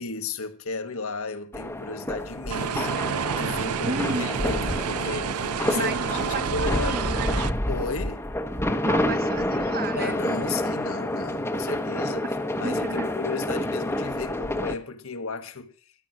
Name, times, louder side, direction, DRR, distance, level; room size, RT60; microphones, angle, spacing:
voice 1, 0.0-7.0 7.7-8.2 10.0-15.9, left 4 dB, 65° left, 1.4 m, -34 dB
sound 1, 1.5-14.7, left 1 dB, 10° left, 1.0 m, -28 dB
sound 2, 2.5-7.5, right 7 dB, 75° right, 0.6 m, -29 dB
voice 2, 3.8-4.3 5.7-7.4 8.8-10.2 12.6-13.1, right 3 dB, 45° right, 1.2 m, -32 dB
13.5 x 11.0 x 6.1 m
head